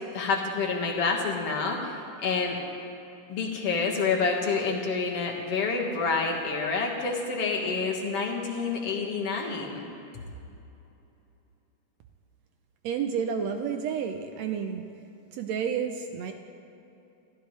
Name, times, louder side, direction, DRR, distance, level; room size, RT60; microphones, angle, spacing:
voice 1, 0.1-2.6 3.3-9.8, left 4 dB, 50° left, 1 dB, 2.4 m, -28 dB
voice 2, 12.8-14.8 15.3-16.3, right 7 dB, 75° right, 6 dB, 1.6 m, -30 dB
27.0 x 15.0 x 3.2 m, 2.8 s
omnidirectional pair, 3.7 m